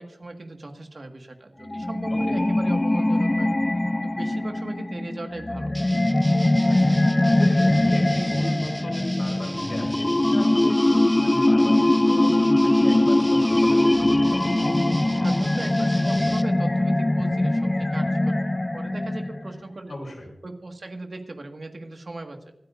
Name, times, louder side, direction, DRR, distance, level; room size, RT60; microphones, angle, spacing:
voice 1, 0.0-3.5 4.0-5.8 15.1-20.0 20.4-22.4, right 2 dB, 55° right, 4 dB, 1.8 m, -38 dB
sound 1, 1.7-19.6, left 1 dB, 25° left, 0.4 m, -21 dB
sound 2, 5.7-16.4, right 1 dB, 10° right, 1.0 m, -37 dB
voice 2, 7.4-14.7 19.9-20.3, left 1 dB, 65° left, 1 dB, 4.6 m, -37 dB
25.5 x 9.1 x 2.6 m, 0.88 s
wide cardioid pair, 70°, 0 cm